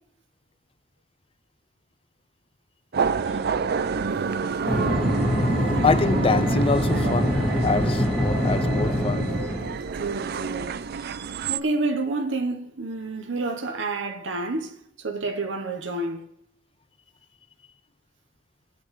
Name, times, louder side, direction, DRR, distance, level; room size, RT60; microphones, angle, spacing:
sound 1, 2.9-11.6, right 5 dB, 55° right, 0.5 m, -28 dB
sound 2, 4.7-9.8, left 1 dB, 10° left, 2.6 m, -24 dB
voice 1, 5.8-9.3, left 4 dB, 30° left, 0.5 m, -25 dB
voice 2, 9.9-10.8 11.5-16.3, right 3 dB, 80° right, 0.9 m, -29 dB
20.0 x 8.7 x 3.1 m
head